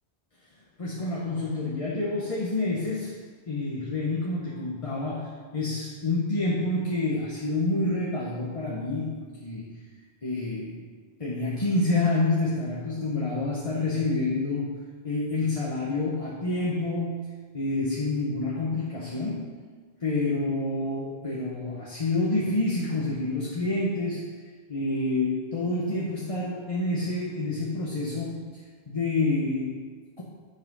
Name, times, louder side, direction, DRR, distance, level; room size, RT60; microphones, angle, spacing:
voice 1, 0.8-3.2 3.5-9.6 10.2-10.9 11.2-17.3 17.5-19.6 20.0-24.2 24.7-28.6 28.9-30.2, left 2 dB, 30° left, -5 dB, 1.2 m, -28 dB
9.3 x 5.8 x 5.4 m, 1.5 s
omnidirectional pair, 1.1 m